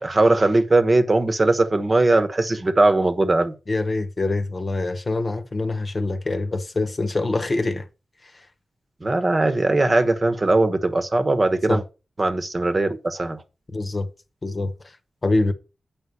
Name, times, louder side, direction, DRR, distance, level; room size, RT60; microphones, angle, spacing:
voice 1, 0.0-3.5 9.0-11.8 12.2-13.4, right 2 dB, 35° right, 1.2 m, -20 dB
voice 2, 3.7-7.9 8.2-8.4 11.7-11.8 13.7-14.1 14.4-15.0 15.2-15.5, left 2 dB, 35° left, 1.2 m, -25 dB
8.4 x 5.4 x 6.7 m
wide cardioid pair, 95°, 0 cm